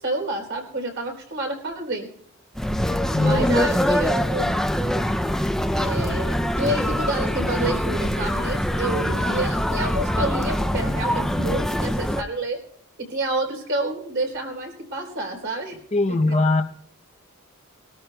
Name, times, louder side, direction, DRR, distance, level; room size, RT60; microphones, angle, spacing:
voice 1, 0.0-2.1 3.2-4.6 5.7-12.6 13.0-15.8 16.1-16.4, right 2 dB, 55° right, 2 dB, 3.8 m, -29 dB
sound 1, 2.6-12.2, equal, ahead, 0.4 m, -23 dB
voice 2, 15.9-16.6, left 2 dB, 30° left, 4 dB, 0.7 m, -20 dB
21.5 x 13.5 x 2.3 m, 0.64 s
head